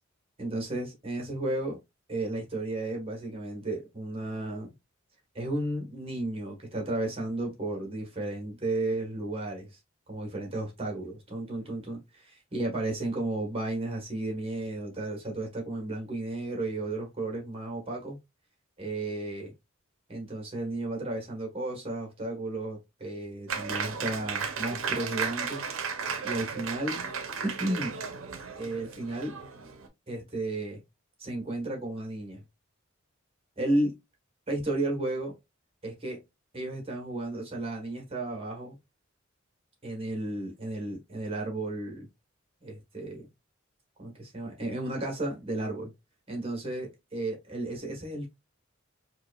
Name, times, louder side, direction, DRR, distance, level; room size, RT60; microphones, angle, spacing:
voice 1, 0.4-1.8 2.1-4.7 5.3-9.7 10.1-18.2 18.8-19.5 20.1-25.6 26.2-27.0 27.4-27.9 28.6-29.4 30.1-30.8 31.2-32.4 33.6-33.9 34.5-35.3 35.8-36.2 36.5-38.7 39.8-42.1 42.6-43.2 44.0-45.9 46.3-48.3, right 2 dB, 30° right, 1.3 m, -33 dB
Applause, 23.5-29.9, right 6 dB, 75° right, 0.6 m, -34 dB
4.8 x 2.4 x 2.3 m
head